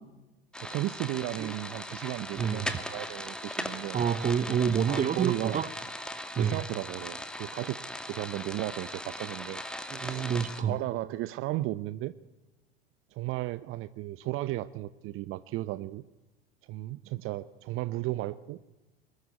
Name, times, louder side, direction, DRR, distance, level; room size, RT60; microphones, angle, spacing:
sound 1, 0.5-10.6, left 1 dB, 5° left, 2.4 m, -39 dB
voice 1, 0.6-4.0 4.8-5.6 6.4-7.8 8.1-9.6 9.9-10.3 10.7-12.1 13.1-16.0 16.7-18.6, right 17 dB, 45° right, 0.8 m, -34 dB
voice 2, 2.3-2.7 3.9-5.7 6.3-6.6 9.9-10.8, right 7 dB, 25° right, 1.0 m, -28 dB
20.0 x 20.0 x 9.5 m
hypercardioid pair, 85°, 31 cm